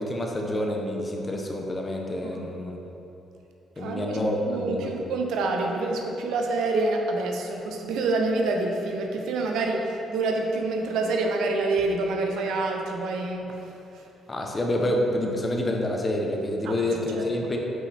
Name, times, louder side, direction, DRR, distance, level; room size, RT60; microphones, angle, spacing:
voice 1, 0.0-2.8 3.8-5.0 14.3-17.6, left 1 dB, 25° left, 1 dB, 0.8 m, -28 dB
voice 2, 3.8-13.5 16.6-16.9 17.1-17.3, right 3 dB, 85° right, 2 dB, 0.6 m, -27 dB
5.4 x 5.4 x 3.4 m, 2.9 s
cardioid pair, 90°, 0 cm